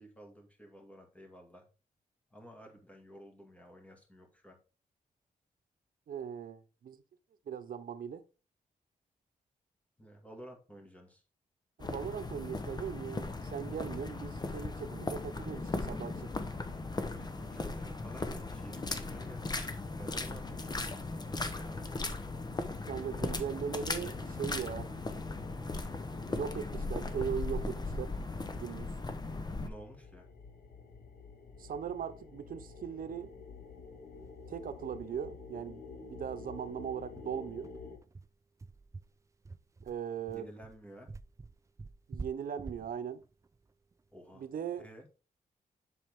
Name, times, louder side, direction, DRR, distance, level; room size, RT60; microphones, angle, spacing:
voice 1, 0.0-1.7 2.3-4.6 10.0-11.2 17.1-20.9 21.2-21.9 29.6-30.3 40.3-41.1 44.1-44.4 44.8-45.1, equal, 10° left, 2.1 m, -52 dB
voice 2, 6.1-7.0 7.5-8.2 11.8-16.3 22.9-24.9 26.3-28.1 28.5-28.9 31.6-33.3 34.5-37.7 39.8-40.5 42.1-43.2 44.3-44.9, right 8 dB, 75° right, 0.8 m, -39 dB
sound 1, 11.8-29.7, left 3 dB, 30° left, 0.9 m, -38 dB
sound 2, 20.7-38.0, left 4 dB, 90° left, 1.6 m, -51 dB
sound 3, 34.3-34.4 34.7-34.8 35.1-35.3 35.6-35.7 36.2-44.6, right 3 dB, 20° right, 0.4 m, -48 dB
7.5 x 6.1 x 3.6 m
wide cardioid pair, 115°, 15 cm